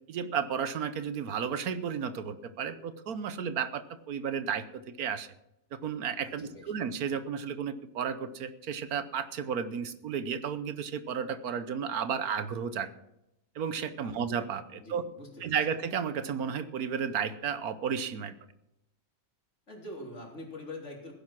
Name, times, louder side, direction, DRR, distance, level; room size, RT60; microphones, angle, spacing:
voice 1, 0.1-5.3 5.8-12.9 13.5-15.0 15.4-18.3, right 7 dB, 75° right, 12 dB, 1.3 m, -33 dB
voice 2, 14.7-15.5 19.7-21.1, left 1 dB, 50° left, 0 dB, 3.7 m, -44 dB
16.0 x 10.5 x 6.0 m, 0.86 s
omnidirectional pair, 1.6 m